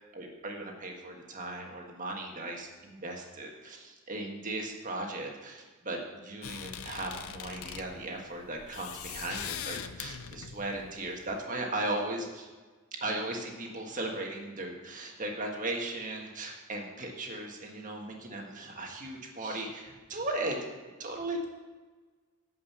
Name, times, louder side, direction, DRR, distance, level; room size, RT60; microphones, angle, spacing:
voice 1, 0.1-12.5 12.9-20.6 21.0-21.5, right 2 dB, 40° right, 1 dB, 1.6 m, -37 dB
sound 1, 6.4-11.4, left 8 dB, 90° left, 0.6 m, -42 dB
11.5 x 5.5 x 7.1 m, 1.3 s
head